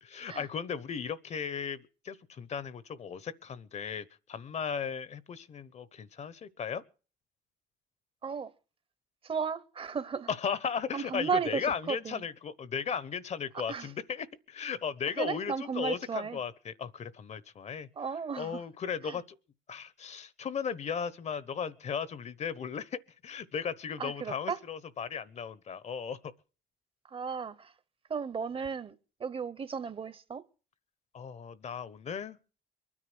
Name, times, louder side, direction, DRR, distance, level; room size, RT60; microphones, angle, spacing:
voice 1, 0.0-6.8 10.3-17.9 18.4-19.4 19.7-26.3 31.1-32.4, left 7 dB, 40° left, 1.0 m, -36 dB
voice 2, 9.2-10.3 10.9-12.2 13.7-13.9 15.2-16.4 18.0-18.6 19.0-19.2 24.0-24.6 27.0-27.7 28.1-28.9 29.2-30.4, right 6 dB, 35° right, 1.0 m, -34 dB
22.5 x 9.9 x 6.1 m
cardioid pair, 110°, 17 cm